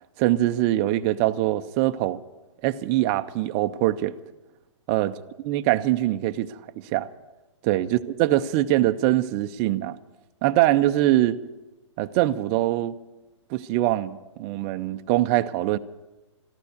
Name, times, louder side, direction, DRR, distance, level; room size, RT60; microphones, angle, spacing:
voice 1, 0.2-2.2 2.6-4.1 4.9-5.1 5.5-6.6 6.8-7.1 7.6-10.0 10.4-11.4 12.0-12.9 13.5-15.8, right 15 dB, 30° right, 0.5 m, -23 dB
14.5 x 12.0 x 8.2 m
hypercardioid pair, 135°, 16 cm